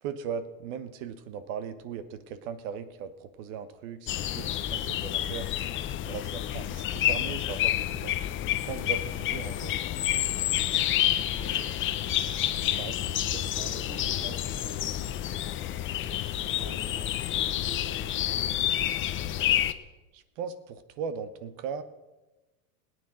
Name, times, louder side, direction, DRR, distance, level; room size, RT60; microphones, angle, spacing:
voice 1, 0.0-5.5 6.1-8.1 8.7-9.8 12.7-13.5 20.1-21.8, right 7 dB, 55° right, 12 dB, 1.1 m, -38 dB
sound 1, 4.1-19.7, left 12 dB, 25° left, 0.6 m, -29 dB
voice 2, 11.3-12.0 13.2-15.2 16.5-19.3, right 1 dB, 15° right, 1 dB, 3.0 m, -46 dB
17.5 x 9.3 x 6.2 m, 1.1 s
hypercardioid pair, 115°, 44 cm